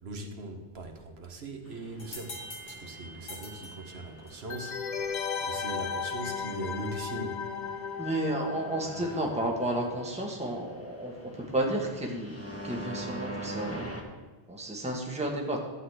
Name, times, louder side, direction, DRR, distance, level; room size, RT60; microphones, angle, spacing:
voice 1, 0.0-2.4 2.7-5.1 5.4-7.4 8.8-9.3, right 2 dB, 80° right, 4 dB, 1.4 m, -40 dB
sound 1, 1.6-14.0, right 1 dB, 15° left, 1.0 m, -45 dB
sound 2, 2.0-4.6, left 1 dB, 70° left, 1.7 m, -45 dB
sound 3, 4.5-10.0 10.2-10.3, left 6 dB, 50° left, 0.7 m, -36 dB
voice 2, 8.0-13.9 14.5-15.6, right 1 dB, 5° right, -1 dB, 1.3 m, -32 dB
12.0 x 4.0 x 7.9 m, 1.3 s
omnidirectional pair, 1.1 m